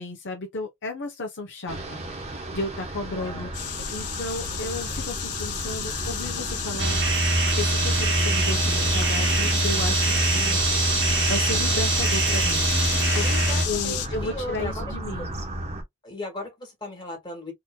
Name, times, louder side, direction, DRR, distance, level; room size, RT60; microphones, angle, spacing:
voice 1, 0.0-3.5 3.9-7.0 7.6-10.6 11.3-13.4 13.6-15.3, left 2 dB, 55° left, 1.0 m, -33 dB
sound 1, 1.7-15.8, right 1 dB, 30° right, 1.1 m, -34 dB
voice 2, 3.1-3.8 13.2-14.9 15.2-15.3 16.0-17.5, left 1 dB, 20° left, 2.0 m, -37 dB
sound 2, 3.5-14.1, left 10 dB, 85° left, 0.8 m, -31 dB
sound 3, 6.8-13.7, right 3 dB, 55° right, 1.1 m, -23 dB
4.2 x 2.9 x 2.3 m
head